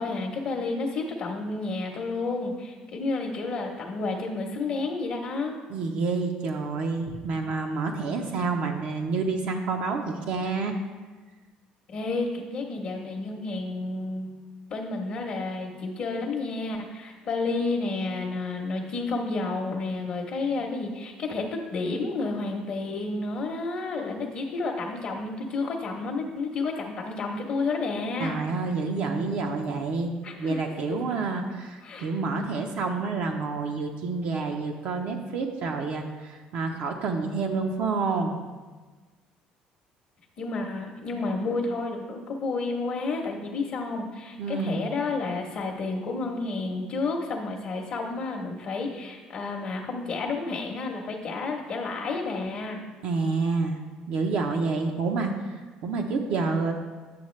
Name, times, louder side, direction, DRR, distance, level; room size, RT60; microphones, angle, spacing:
voice 1, 0.0-5.6 11.9-14.3 14.7-28.4 30.2-30.6 31.8-32.1 40.4-52.8, left 3 dB, 45° left, 0 dB, 0.8 m, -31 dB
voice 2, 5.7-10.7 28.2-30.1 30.4-38.4 44.4-44.9 53.0-53.8 54.1-56.7, right 4 dB, 65° right, 2 dB, 0.7 m, -28 dB
8.6 x 6.5 x 3.2 m, 1.3 s
cardioid pair, 140°, 3 cm